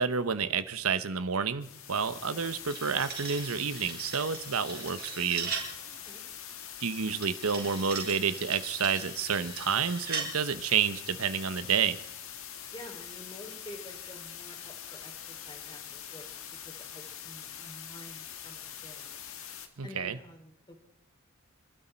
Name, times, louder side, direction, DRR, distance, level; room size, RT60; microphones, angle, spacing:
voice 1, 0.0-5.5 6.8-12.0 19.8-20.2, right 6 dB, 85° right, 13 dB, 0.9 m, -29 dB
sound 1, 1.6-19.7, left 9 dB, 70° left, 1.7 m, -44 dB
sound 2, 2.4-5.8 7.2-10.3, right 5 dB, 45° right, 4.0 m, -39 dB
voice 2, 12.7-16.3 16.6-19.2 19.8-20.8, left 1 dB, 20° left, 4 dB, 3.2 m, -49 dB
25.5 x 12.5 x 4.4 m, 0.76 s
head